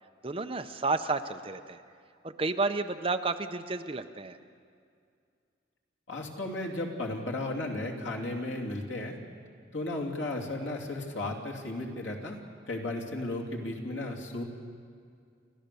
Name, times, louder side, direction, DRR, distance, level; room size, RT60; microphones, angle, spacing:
voice 1, 0.2-1.8 2.2-4.4, right 3 dB, 30° right, 8 dB, 0.7 m, -31 dB
voice 2, 6.1-9.2 9.7-12.4 12.7-14.4, left 2 dB, 90° left, 0 dB, 2.9 m, -34 dB
29.5 x 14.0 x 6.9 m, 2.3 s
head